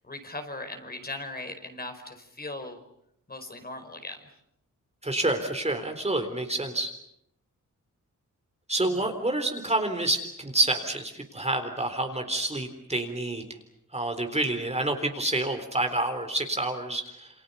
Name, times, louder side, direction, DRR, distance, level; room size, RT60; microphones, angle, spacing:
voice 1, 0.0-2.8 3.3-4.3 8.8-9.1, left 2 dB, 30° left, 6 dB, 4.9 m, -39 dB
voice 2, 5.0-6.9 8.7-13.4 13.9-17.3, right 2 dB, 20° right, 5 dB, 3.8 m, -28 dB
28.5 x 26.5 x 7.0 m, 0.76 s
wide cardioid pair, 95°, 32 cm